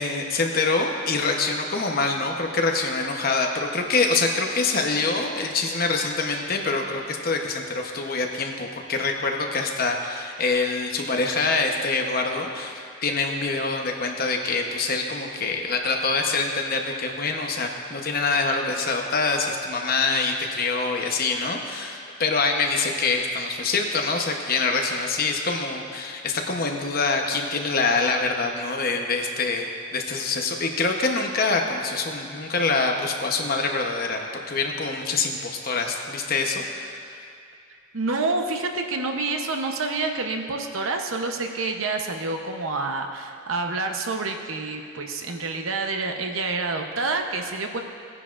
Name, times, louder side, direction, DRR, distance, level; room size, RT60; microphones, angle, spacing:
voice 1, 0.0-37.3, left 3 dB, 45° left, 2 dB, 0.9 m, -25 dB
voice 2, 37.9-47.8, right 3 dB, 80° right, 4 dB, 0.9 m, -28 dB
18.0 x 9.7 x 2.5 m, 2.3 s
head